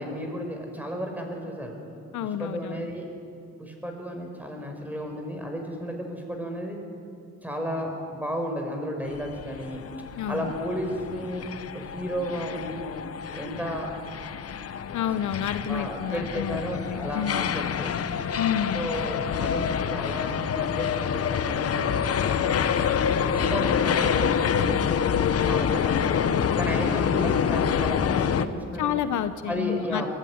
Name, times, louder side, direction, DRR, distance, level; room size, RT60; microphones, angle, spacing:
voice 1, 0.0-1.7 2.4-3.1 3.6-6.8 7.4-9.8 10.3-11.5 11.7-12.9 13.3-13.9 15.7-17.9 18.7-22.9 23.3-26.3 26.6-28.9 29.5-30.1, equal, 5° right, 2 dB, 5.3 m, -33 dB
voice 2, 2.1-2.9 10.2-10.5 14.9-16.6 16.8-17.5 18.4-18.9 28.8-30.0, left 9 dB, 75° left, 11 dB, 1.0 m, -29 dB
sound 1, 9.1-28.4, left 7 dB, 50° left, 1.1 m, -27 dB
21.5 x 15.0 x 9.6 m, 2.5 s
cardioid pair, 90°, 30 cm